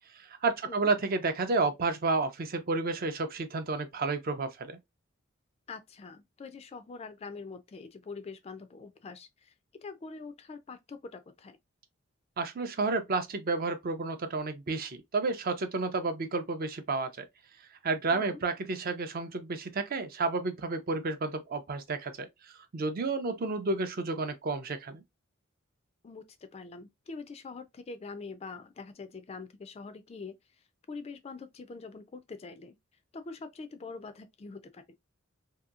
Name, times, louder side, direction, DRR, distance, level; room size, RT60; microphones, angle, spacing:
voice 1, 0.2-4.7 12.4-17.2 17.8-22.3 22.7-25.0, right 3 dB, 45° right, 0.5 m, -31 dB
voice 2, 5.7-9.5 9.8-11.6 18.1-18.4 26.0-30.4 30.9-32.8 33.1-34.8, left 4 dB, 30° left, 0.3 m, -44 dB
2.8 x 2.6 x 2.4 m
head